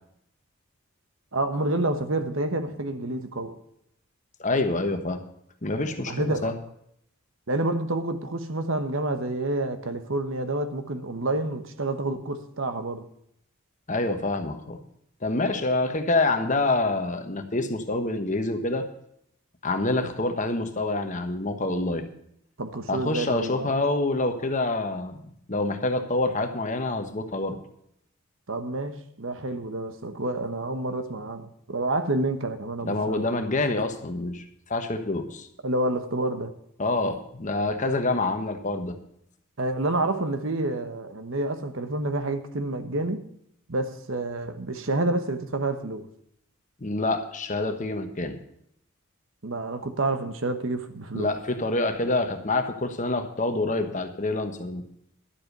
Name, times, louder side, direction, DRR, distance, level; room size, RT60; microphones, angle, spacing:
voice 1, 1.3-3.6 6.1-6.5 7.5-13.1 22.6-23.7 28.5-33.3 35.6-36.5 39.6-43.2 43.7-46.1 49.4-51.3, right 2 dB, 60° right, 1.1 m, -28 dB
voice 2, 4.4-5.2 5.6-6.6 13.9-14.8 15.2-18.8 19.6-22.0 22.9-25.2 25.5-27.6 32.8-34.4 34.7-35.5 36.8-39.0 46.8-48.4 51.1-54.8, left 2 dB, 35° left, 1.2 m, -26 dB
11.5 x 7.7 x 6.6 m
head